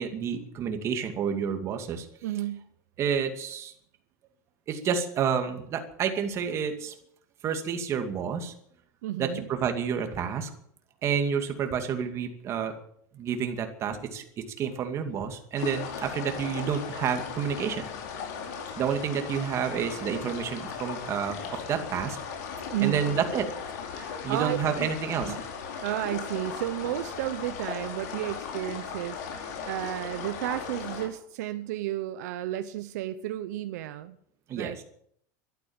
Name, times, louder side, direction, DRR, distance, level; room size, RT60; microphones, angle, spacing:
voice 1, 0.0-2.1 3.0-3.7 4.7-6.9 7.4-8.5 9.2-10.5 11.0-12.7 13.1-17.8 18.8-21.4 21.7-22.2 22.8-23.5 24.2-25.3 34.5-34.8, right 7 dB, 30° right, 6 dB, 2.4 m, -29 dB
voice 2, 2.2-2.7 9.0-9.5 22.7-23.0 23.9-24.9 25.3-25.4 25.8-34.2 34.5-34.8, right 13 dB, 75° right, 11 dB, 1.0 m, -32 dB
sound 1, 15.6-31.1, left 6 dB, 70° left, 4.9 m, -37 dB
13.0 x 12.0 x 8.8 m, 0.68 s
supercardioid pair, 145°, 9 cm